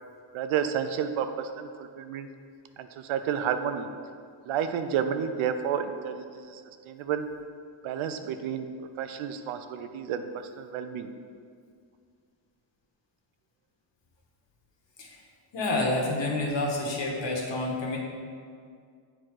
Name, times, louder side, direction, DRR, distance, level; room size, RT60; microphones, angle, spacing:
voice 1, 0.3-2.3 2.8-3.9 4.4-6.6 6.9-7.2 7.8-8.7 9.0-11.1, right 8 dB, 90° right, 8 dB, 0.6 m, -31 dB
voice 2, 15.5-18.0, left 2 dB, 65° left, -1 dB, 1.7 m, -28 dB
8.0 x 4.4 x 4.7 m, 2.2 s
cardioid pair, 80°, 47 cm